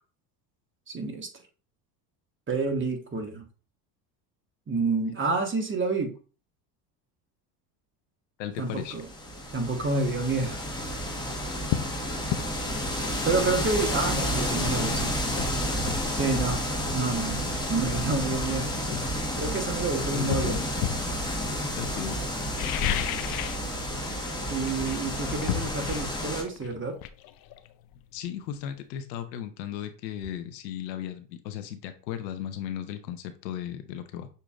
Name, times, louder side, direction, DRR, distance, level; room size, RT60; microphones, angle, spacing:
voice 1, 0.9-1.3 2.5-3.4 4.7-6.1 8.6-9.1 9.5-10.6 12.9-15.2 16.1-16.6 16.9-17.4 17.7-18.7 19.1-20.6 24.5-27.0, right 3 dB, 25° right, 4 dB, 1.1 m, -29 dB
voice 2, 8.4-9.0 20.0-20.6 21.8-22.2 28.1-34.3, left 9 dB, 85° left, 9 dB, 0.8 m, -36 dB
sound 1, 8.9-26.4, equal, 10° left, 1.2 m, -30 dB
sound 2, 11.0-11.1 11.7-11.9 12.3-12.5 14.4-14.5 14.9-16.6 17.6-17.8 18.3-19.7 20.3-21.1 22.4-23.7 23.9-24.3 24.6-28.2 28.5-28.6, left 11 dB, 50° left, 0.5 m, -33 dB
6.4 x 2.8 x 2.3 m, 0.37 s
hypercardioid pair, 80°, 50 cm